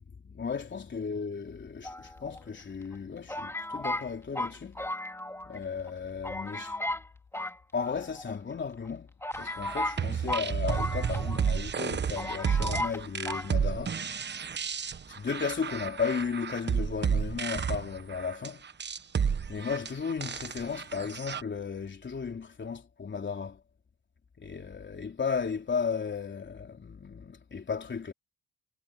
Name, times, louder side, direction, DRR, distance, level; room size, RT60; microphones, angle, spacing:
voice 1, 0.2-4.8 5.5-6.8 7.7-9.1 9.4-14.0 15.1-18.7 19.5-23.6 24.4-28.1, left 6 dB, 40° left, 3.9 m, -35 dB
sound 1, 1.8-2.6 3.3-5.6 5.9-6.0 6.2-7.1 7.3-8.3 8.8-8.9 9.2-11.5 11.8-11.9 12.2-13.0 13.3-13.5, left 1 dB, 10° left, 2.8 m, -35 dB
sound 2, 9.5-21.4, right 7 dB, 35° right, 1.2 m, -31 dB
cardioid pair, 90°, 30 cm